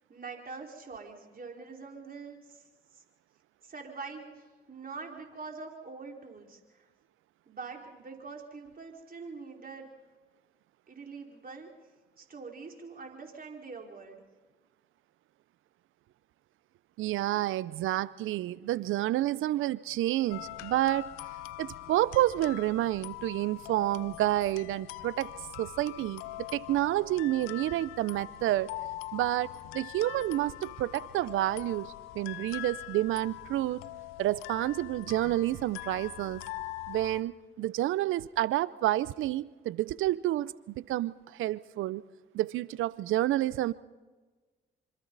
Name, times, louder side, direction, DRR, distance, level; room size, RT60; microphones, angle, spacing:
voice 1, 0.1-2.6 2.9-3.0 3.6-6.6 7.5-9.9 10.9-11.7 12.2-14.2, right 4 dB, 45° right, 1 dB, 4.8 m, -44 dB
voice 2, 17.0-21.0 21.6-25.3 25.6-28.7 29.1-33.8 34.2-36.4 36.9-42.0 42.3-43.7, right 14 dB, 75° right, 19 dB, 0.7 m, -29 dB
sound 1, 20.3-37.2, left 16 dB, 90° left, 0.7 m, -43 dB
26.0 x 26.0 x 4.1 m, 1.3 s
hypercardioid pair, 45°, 21 cm